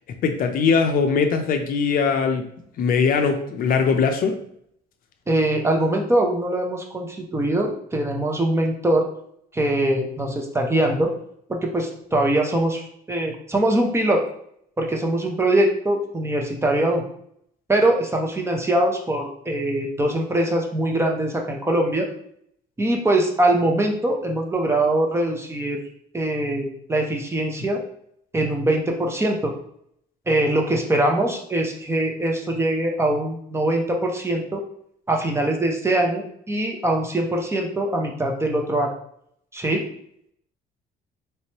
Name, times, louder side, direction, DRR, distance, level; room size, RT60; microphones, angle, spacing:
voice 1, 0.2-2.5 2.8-4.4, left 5 dB, 55° left, 5 dB, 0.5 m, -21 dB
voice 2, 5.3-9.1 9.5-11.1 11.5-14.2 14.8-17.0 17.7-22.1 22.8-25.8 26.1-27.8 28.3-29.5 30.3-34.6 35.1-38.9 39.5-39.8, right 1 dB, 15° right, 1 dB, 0.6 m, -22 dB
3.3 x 3.0 x 2.9 m, 0.68 s
cardioid pair, 110°, 17 cm